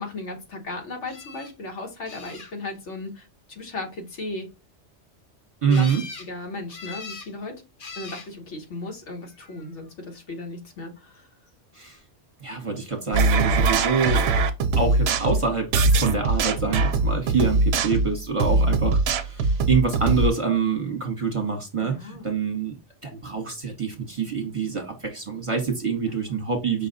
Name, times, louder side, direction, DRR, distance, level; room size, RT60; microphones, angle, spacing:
voice 1, 0.0-4.5 5.7-5.9 6.2-7.6 7.9-11.3 18.5-19.0 21.8-22.3 26.1-26.2, left 2 dB, 70° left, 1.5 m, -36 dB
sound 1, 1.1-1.5 2.0-2.8 5.7-6.3 6.7-7.3 7.8-8.3 9.2-9.7 15.9-16.0 16.4-16.5, left 4 dB, 50° left, 1.0 m, -41 dB
voice 2, 5.6-6.0 11.7-12.0 12.4-14.3 14.8-15.7 16.0-19.0 19.2-22.7 23.0-26.9, right 5 dB, 30° right, 1.1 m, -26 dB
sound 2, 13.1-20.3, right 3 dB, 65° right, 0.8 m, -22 dB
5.6 x 2.3 x 3.9 m
omnidirectional pair, 1.2 m